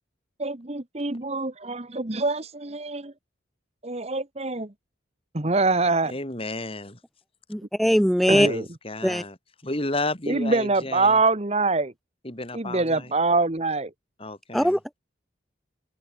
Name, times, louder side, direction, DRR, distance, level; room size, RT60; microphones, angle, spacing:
voice 1, 0.4-3.1 3.8-4.7 5.3-6.1 8.3-8.7 10.3-11.9 12.5-13.9, right 3 dB, 35° right, 1.2 m, -24 dB
voice 2, 6.0-7.0 8.3-9.4 9.6-11.2 12.2-13.1 14.2-14.8, left 2 dB, 30° left, 3.6 m, -32 dB
voice 3, 7.5-8.5 9.0-9.2 14.5-14.8, equal, ahead, 0.6 m, -20 dB
head